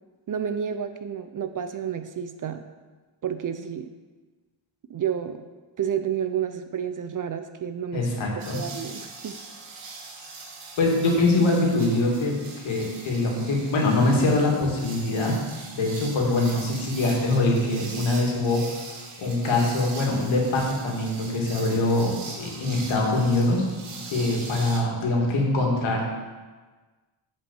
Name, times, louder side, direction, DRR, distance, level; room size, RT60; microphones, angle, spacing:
voice 1, 0.3-2.6 3.2-3.9 4.9-5.4 5.8-8.1 8.5-9.4, right 8 dB, 40° right, 9 dB, 0.5 m, -30 dB
voice 2, 7.9-8.6 10.8-12.4 12.6-15.3 15.7-18.6 19.2-23.6 23.9-26.0, left 2 dB, 70° left, -2 dB, 2.4 m, -23 dB
sound 1, 8.4-24.8, right 4 dB, 85° right, 1.9 m, -41 dB
8.3 x 5.4 x 7.1 m, 1.3 s
wide cardioid pair, 160°, 49 cm